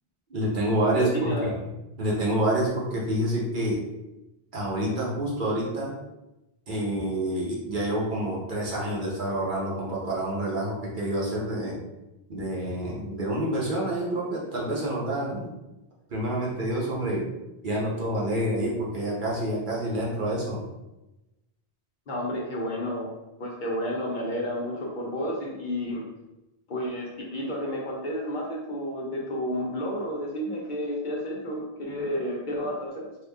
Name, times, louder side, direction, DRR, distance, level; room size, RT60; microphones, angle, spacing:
voice 1, 0.3-1.5 2.0-3.8 4.5-5.9 6.7-11.8 12.3-15.5 16.1-17.2 17.6-20.6, right 1 dB, 55° right, -5 dB, 1.0 m, -28 dB
voice 2, 0.9-1.5 22.1-23.1 23.4-26.0 26.7-33.0, equal, 55° left, -2 dB, 0.8 m, -31 dB
2.9 x 2.3 x 3.4 m, 0.97 s
omnidirectional pair, 1.1 m